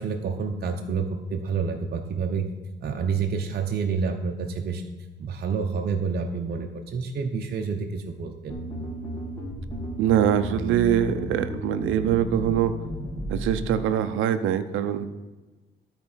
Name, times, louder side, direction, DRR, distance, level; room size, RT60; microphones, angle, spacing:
voice 1, 0.0-2.5 2.8-4.8 5.2-8.6, right 5 dB, 55° right, 2 dB, 0.8 m, -28 dB
sound 1, 8.5-13.8, equal, 15° left, 2.5 m, -34 dB
voice 2, 10.0-12.8 13.3-15.1, right 10 dB, 90° right, 10 dB, 0.6 m, -23 dB
13.0 x 4.4 x 5.6 m, 1.2 s
cardioid pair, 90°, 20 cm